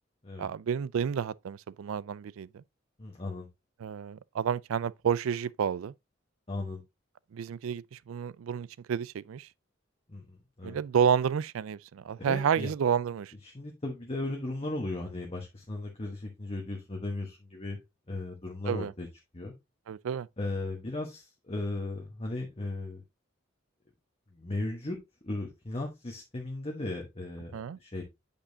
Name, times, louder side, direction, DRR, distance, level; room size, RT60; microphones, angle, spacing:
voice 1, 0.4-2.6 3.8-5.9 7.3-9.5 10.6-13.3 18.7-18.9 19.9-20.3 27.5-27.8, right 7 dB, 80° right, 0.3 m, -30 dB
voice 2, 3.0-3.5 6.5-6.8 10.1-10.8 12.3-12.7 13.4-17.8 18.1-19.1 19.3-19.5 20.4-23.0 24.3-25.0 25.2-27.5 27.8-28.0, left 2 dB, 30° left, 1.2 m, -36 dB
8.6 x 5.3 x 2.7 m
head